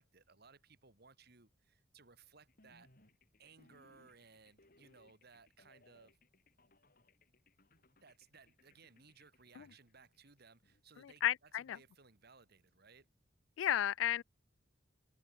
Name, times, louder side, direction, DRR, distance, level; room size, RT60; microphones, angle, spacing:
voice 1, 0.0-2.9 3.4-6.2 8.0-13.1, right 4 dB, 60° right, 2.7 m, -62 dB
sound 1, 2.5-10.8, left 2 dB, 50° left, 6.8 m, -69 dB
voice 2, 11.0-11.8 13.6-14.2, left 11 dB, 90° left, 0.3 m, -33 dB
head